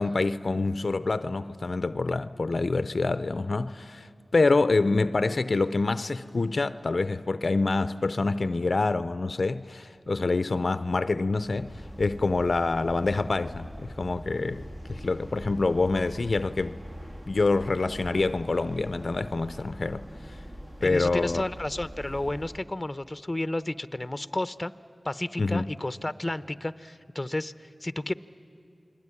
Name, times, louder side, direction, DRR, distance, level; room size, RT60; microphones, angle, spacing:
voice 1, 0.0-16.8 17.3-20.4 20.8-21.4 25.4-25.7, left 3 dB, 65° left, 0.6 m, -26 dB
sound 1, 11.4-22.7, equal, 30° right, 1.6 m, -42 dB
voice 2, 20.8-24.7 25.0-28.1, left 1 dB, 25° left, 0.8 m, -32 dB
29.0 x 21.0 x 9.8 m
cardioid pair, 50°, 0 cm